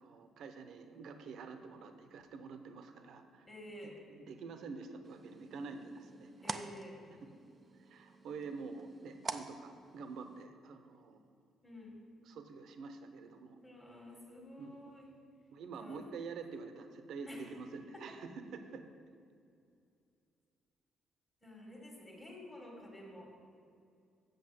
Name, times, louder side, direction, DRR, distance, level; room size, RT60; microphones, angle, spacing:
voice 1, 0.0-3.5 3.8-6.7 7.2-7.3 7.8-11.2 12.3-13.6 14.6-15.0 15.5-18.9, right 4 dB, 65° right, 8 dB, 0.8 m, -47 dB
voice 2, 3.5-4.0 6.4-7.0 11.6-12.0 13.6-15.1 15.8-16.0 17.3-17.4 17.9-18.0 21.4-23.3, left 1 dB, 20° left, -3 dB, 1.7 m, -50 dB
sound 1, 5.0-10.4, right 4 dB, 25° right, 0.4 m, -47 dB
7.8 x 7.0 x 7.6 m, 2.4 s
cardioid pair, 155°, 0 cm